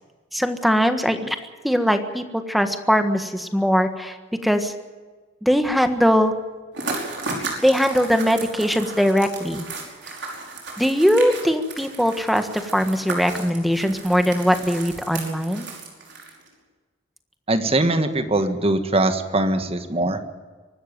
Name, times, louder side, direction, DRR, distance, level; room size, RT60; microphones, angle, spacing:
voice 1, 0.3-1.4 1.6-4.2 4.4-4.7 5.4-6.3 7.4-9.7 10.1-10.2 10.8-15.7, equal, ahead, 7 dB, 1.5 m, -21 dB
sound 1, 6.7-16.5, right 3 dB, 65° right, 5.3 m, -34 dB
voice 2, 17.5-20.2, right 2 dB, 30° right, 8 dB, 1.6 m, -21 dB
24.0 x 12.5 x 9.0 m, 1.4 s
head